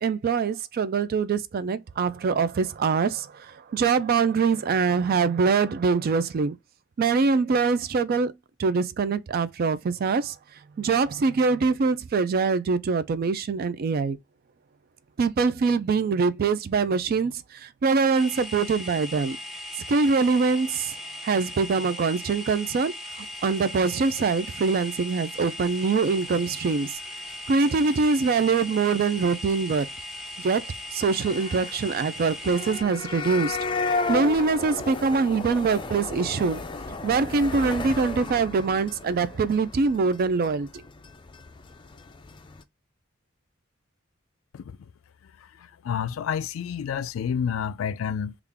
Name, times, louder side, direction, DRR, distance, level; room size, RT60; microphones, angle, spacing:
voice 1, 0.0-6.6 7.0-8.3 8.6-10.4 10.8-14.2 15.2-19.4 19.9-20.9 21.2-27.0 27.5-29.9 30.4-30.6 30.9-36.6 37.0-40.7, right 4 dB, 50° right, 0.4 m, -24 dB
sound 1, 18.1-32.8, left 1 dB, ahead, 0.8 m, -38 dB
sound 2, 23.6-23.7 23.9-24.0 24.2-24.3 24.5-24.6 24.8-24.9 25.1-25.2 25.4-25.7 26.0-26.1 26.3-26.4 26.7-26.9 27.3-27.4 27.6-28.3 28.5-28.9 29.2-29.3 29.5-29.6 29.8-29.9 30.1-30.2 30.4-30.5 30.7-42.6, left 3 dB, 25° left, 0.4 m, -34 dB
voice 2, 45.6-48.3, left 7 dB, 90° left, 0.3 m, -29 dB
3.6 x 2.4 x 3.3 m
head